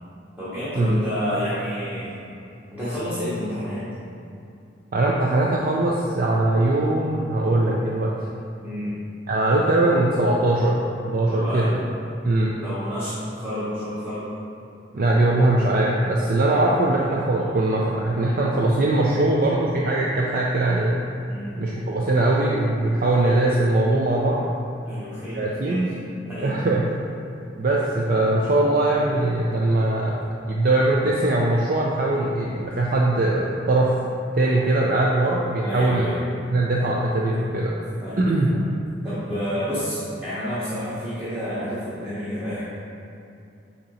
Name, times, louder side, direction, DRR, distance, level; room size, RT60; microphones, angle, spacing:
voice 1, 0.4-2.2 2.7-3.8 8.6-9.0 11.3-11.7 12.6-14.3 16.6-16.9 21.3-21.6 24.8-25.8 26.2-26.5 35.6-36.3 38.0-38.6 39.0-42.7, equal, 10° right, -12 dB, 1.1 m, -30 dB
voice 2, 4.9-8.1 9.3-10.8 11.1-11.6 12.2-12.6 14.9-20.9 21.6-24.4 25.3-25.9 26.4-26.9 27.6-30.2 30.5-33.9 34.3-36.1 36.5-37.7 38.2-38.5, right 2 dB, 50° right, -3 dB, 0.5 m, -21 dB
7.9 x 2.9 x 4.2 m, 2.6 s
head